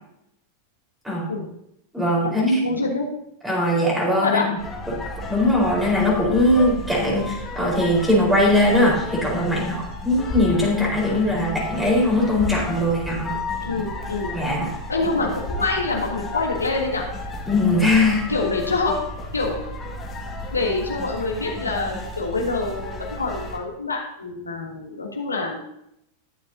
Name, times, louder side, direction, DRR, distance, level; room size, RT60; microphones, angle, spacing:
voice 1, 1.9-2.6 3.4-4.5 4.9-5.0 5.3-13.4 14.3-14.7 17.5-18.3, left 1 dB, 5° right, -3 dB, 4.7 m, -20 dB
voice 2, 2.6-3.1 4.2-4.5 9.6-9.8 13.6-14.3 14.9-17.1 18.3-19.0 19.3-19.7 20.5-25.6, left 3 dB, 80° left, -1 dB, 2.9 m, -26 dB
sound 1, 4.6-23.6, left 2 dB, 20° left, 2.1 m, -32 dB
21.0 x 7.4 x 2.9 m, 0.76 s
figure-of-eight pair, 90°, 0 cm